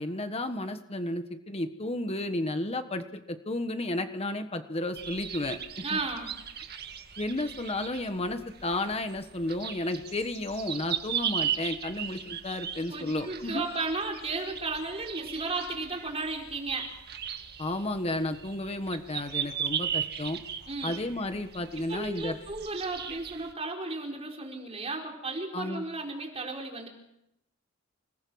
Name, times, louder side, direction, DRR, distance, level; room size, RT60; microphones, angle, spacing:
voice 1, 0.0-5.6 5.9-6.0 7.2-13.6 17.6-20.4 20.8-22.4 25.5-25.8, left 1 dB, 30° left, 8 dB, 1.4 m, -32 dB
sound 1, 4.9-23.5, right 8 dB, 50° right, 1.9 m, -37 dB
voice 2, 5.8-6.3 12.9-16.9 20.7-21.0 21.8-26.9, right 3 dB, 30° right, 1 dB, 4.7 m, -34 dB
28.5 x 20.5 x 6.4 m, 0.84 s
head